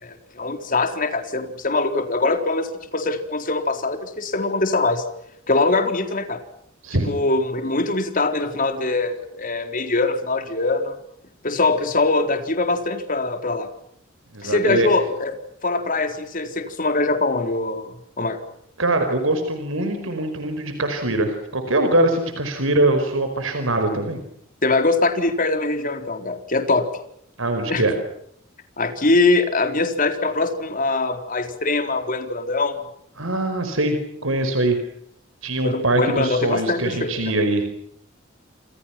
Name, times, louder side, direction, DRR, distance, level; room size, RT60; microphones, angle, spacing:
voice 1, 0.0-5.0 5.5-6.4 6.9-11.0 11.4-13.7 14.4-15.3 15.6-18.4 24.6-26.8 27.7-27.8 28.8-32.8 35.6-37.3, left 3 dB, 40° left, 6 dB, 4.1 m, -22 dB
voice 2, 6.8-7.2 14.3-14.9 18.8-24.2 27.4-27.9 33.2-34.0 34.2-34.8 35.4-37.6, right 2 dB, 85° right, 7 dB, 5.0 m, -22 dB
28.5 x 28.0 x 5.9 m, 0.70 s
head